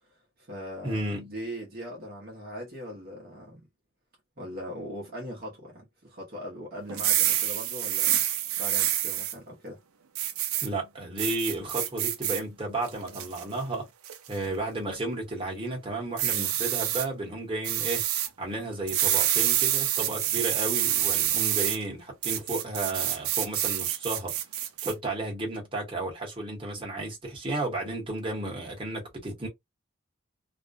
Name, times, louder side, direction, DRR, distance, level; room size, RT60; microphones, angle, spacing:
voice 1, 0.1-3.6 4.4-8.2 8.6-9.8 16.3-16.5, equal, 45° right, 0.7 m, -40 dB
voice 2, 0.8-1.3 10.6-13.9 14.3-24.3 24.8-29.5, right 2 dB, 25° right, 1.0 m, -33 dB
sound 1, 6.9-9.3 10.2-10.7 11.2-12.4 12.9-13.4 14.0-14.4 16.2-17.1 17.6-18.3 18.9-21.8 22.2-24.9, right 12 dB, 90° right, 0.5 m, -27 dB
2.4 x 2.1 x 2.5 m
head